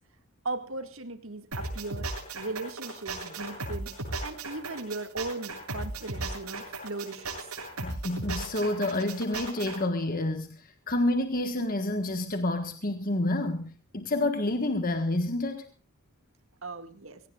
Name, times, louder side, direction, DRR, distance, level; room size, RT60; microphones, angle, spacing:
voice 1, 0.4-3.9 4.2-7.5 16.6-17.2, right 2 dB, 60° right, 8 dB, 2.1 m, -38 dB
sound 1, 1.5-9.8, right 2 dB, 80° right, 7.6 m, -36 dB
voice 2, 7.8-15.6, left 1 dB, 40° left, 7 dB, 1.5 m, -29 dB
23.0 x 18.0 x 2.5 m, 0.39 s
head